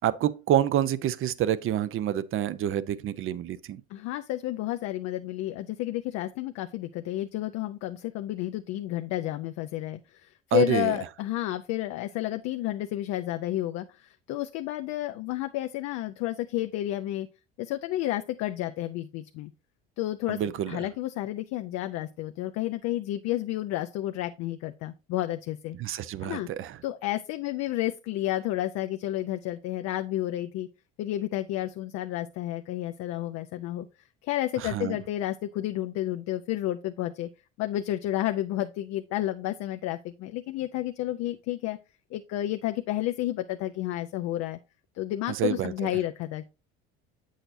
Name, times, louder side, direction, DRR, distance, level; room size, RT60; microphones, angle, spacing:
voice 1, 0.0-3.8 10.5-10.9 20.3-20.9 25.8-26.8 34.6-35.0 45.3-45.7, right 11 dB, 45° right, 0.6 m, -27 dB
voice 2, 3.9-17.3 17.6-19.5 20.0-25.8 26.2-26.5 26.8-30.7 31.0-33.9 34.2-37.3 37.6-41.8 42.1-44.6 45.0-46.4, left 14 dB, 60° left, 0.5 m, -31 dB
7.8 x 6.4 x 2.6 m
supercardioid pair, 80°, 29 cm